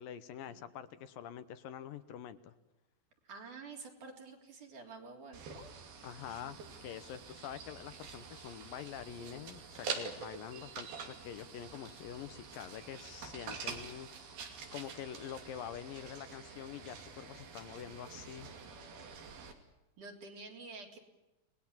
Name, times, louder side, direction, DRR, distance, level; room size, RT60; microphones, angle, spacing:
voice 1, 0.0-2.5 6.0-14.3 14.7-18.6, left 9 dB, 75° left, 11 dB, 2.6 m, -46 dB
voice 2, 3.2-5.7 20.0-21.0, right 3 dB, 55° right, 2 dB, 4.8 m, -49 dB
sound 1, 5.3-19.5, right 5 dB, 75° right, 4.6 m, -46 dB
29.5 x 20.0 x 7.4 m, 1.0 s
omnidirectional pair, 4.4 m